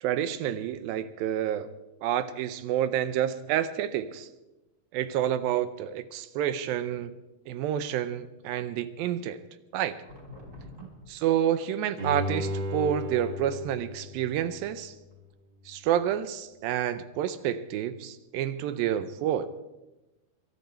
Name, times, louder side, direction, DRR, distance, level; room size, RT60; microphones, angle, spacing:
voice 1, 0.0-1.7 2.0-4.3 4.9-7.1 7.5-9.4 9.7-10.0 10.8-15.0 15.7-19.5, right 10 dB, 80° right, 13 dB, 2.3 m, -29 dB
sound 1, 10.0-11.1 12.6-12.9 14.8-15.1 17.3-17.4, left 2 dB, 20° right, 3.0 m, -46 dB
Bowed string instrument, 12.0-15.1 15.5-15.6, equal, 55° right, 1.2 m, -35 dB
23.0 x 11.5 x 4.3 m, 1.0 s
omnidirectional pair, 4.4 m